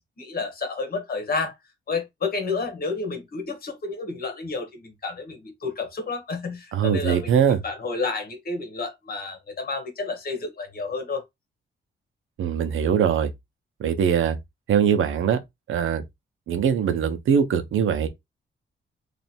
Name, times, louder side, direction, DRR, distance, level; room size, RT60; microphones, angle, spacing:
voice 1, 0.2-1.5 1.9-7.3 7.6-11.2, left 4 dB, 50° left, 1.4 m, -30 dB
voice 2, 6.7-7.6 12.4-13.3 13.8-14.4 14.7-15.4 15.7-16.0 16.5-18.1, right 8 dB, 85° right, 0.8 m, -22 dB
3.2 x 2.6 x 4.2 m
wide cardioid pair, 135°, 20 cm